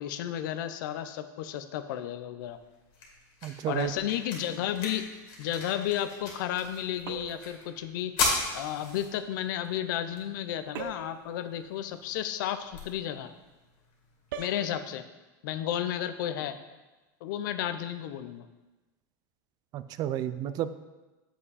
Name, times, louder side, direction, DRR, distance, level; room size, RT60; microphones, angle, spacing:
voice 1, 0.0-2.6 3.7-5.0 5.4-8.1 8.5-13.3 14.4-15.0 15.4-16.6 17.2-18.5 20.5-20.6, left 11 dB, 70° left, 10 dB, 0.6 m, -32 dB
sound 1, 2.4-14.4, left 3 dB, 45° left, 2.1 m, -38 dB
voice 2, 3.4-3.9 19.7-20.7, right 12 dB, 35° right, 13 dB, 0.4 m, -31 dB
sound 2, 7.1-7.5 10.8-11.2 14.3-14.7, right 6 dB, 85° right, 0.8 m, -39 dB
7.4 x 5.5 x 4.1 m, 1.1 s
supercardioid pair, 135°, 11 cm